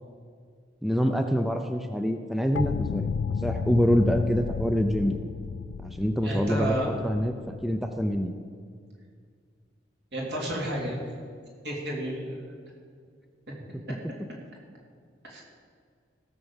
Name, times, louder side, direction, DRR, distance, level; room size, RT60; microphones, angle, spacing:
voice 1, 0.8-3.1 3.4-5.2 5.8-8.3, equal, ahead, 5 dB, 0.5 m, -26 dB
sound 1, 2.6-8.2, left 6 dB, 80° left, 0.3 m, -33 dB
voice 2, 6.2-6.9 10.1-11.0 11.6-12.6 15.2-15.4, right 1 dB, 65° right, -2 dB, 3.5 m, -31 dB
16.5 x 7.0 x 7.2 m, 2.1 s
head